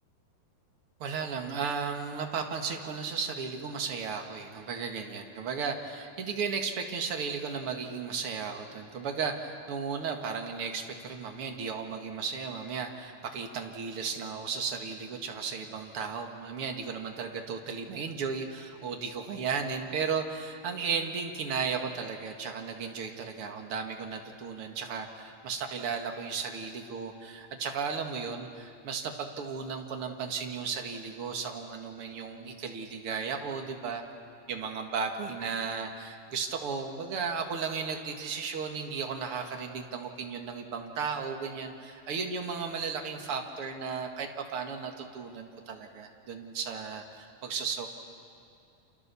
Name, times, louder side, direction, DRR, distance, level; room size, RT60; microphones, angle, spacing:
voice 1, 1.0-34.0 34.5-47.9, right 5 dB, 50° right, 3 dB, 1.9 m, -35 dB
29.5 x 28.0 x 7.0 m, 2.4 s
omnidirectional pair, 4.7 m